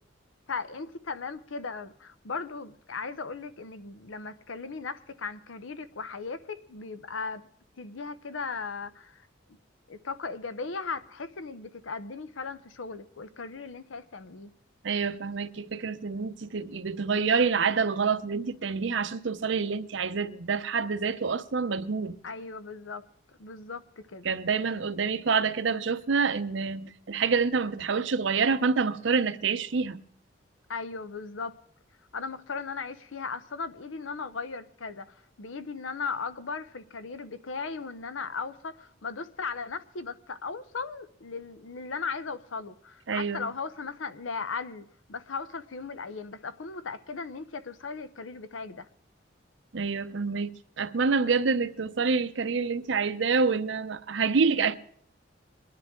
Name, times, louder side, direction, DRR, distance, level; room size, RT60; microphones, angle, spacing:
voice 1, 0.5-7.4 7.8-9.3 9.9-14.5 22.2-23.1 23.4-24.3 30.7-31.6 32.1-48.9, left 4 dB, 85° left, 0.8 m, -37 dB
voice 2, 14.8-22.2 24.2-30.0 43.1-43.5 49.7-54.8, right 5 dB, 75° right, 0.6 m, -27 dB
23.0 x 10.5 x 3.7 m
head